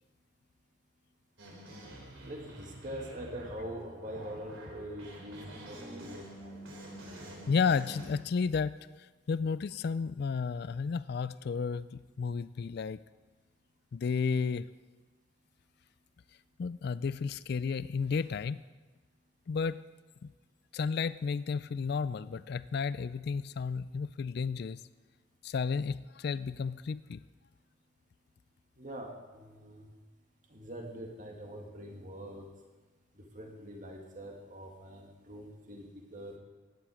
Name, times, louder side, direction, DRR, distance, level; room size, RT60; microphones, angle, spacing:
sound 1, 1.4-8.1, right 1 dB, 75° right, 3.5 m, -47 dB
voice 1, 2.2-6.6 28.8-29.9 30.5-32.5 33.3-35.8 36.1-36.3, equal, 40° right, 1 dB, 2.1 m, -44 dB
voice 2, 7.5-8.7 9.3-13.0 13.9-14.7 16.6-18.6 19.5-19.8 20.2-20.3 20.7-24.8 25.4-27.2, left 5 dB, 50° left, 16 dB, 0.3 m, -32 dB
16.5 x 10.5 x 5.0 m, 1.2 s
head